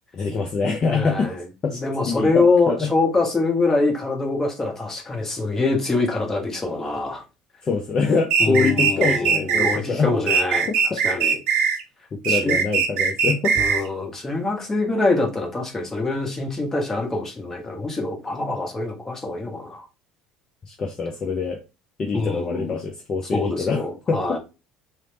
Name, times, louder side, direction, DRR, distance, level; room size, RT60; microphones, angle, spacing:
voice 1, 0.1-1.3 1.6-2.9 7.6-10.2 10.7-11.0 12.1-13.6 20.7-21.6 22.0-24.4, left 4 dB, 35° left, 0.5 m, -25 dB
voice 2, 0.8-1.4 1.8-7.2 8.4-11.3 12.3-12.6 13.6-19.8 22.1-22.8 23.3-24.4, left 3 dB, 20° left, 1.0 m, -24 dB
sound 1, 8.3-9.8 10.3-11.8 12.2-13.9, right 6 dB, 60° right, 0.5 m, -20 dB
3.0 x 2.0 x 2.7 m
hypercardioid pair, 65°, 2 cm